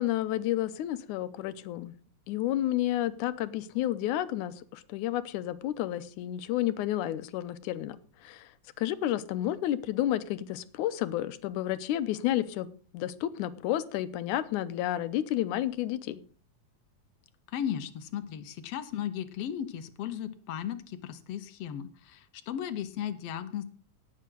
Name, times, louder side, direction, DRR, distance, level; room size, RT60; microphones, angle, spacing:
voice 1, 0.0-2.0 2.3-8.0 8.2-8.5 8.8-16.2, left 13 dB, 85° left, 13 dB, 2.2 m, -31 dB
voice 2, 17.5-23.6, left 9 dB, 65° left, 11 dB, 1.7 m, -36 dB
18.0 x 7.6 x 3.9 m, 0.42 s
omnidirectional pair, 3.5 m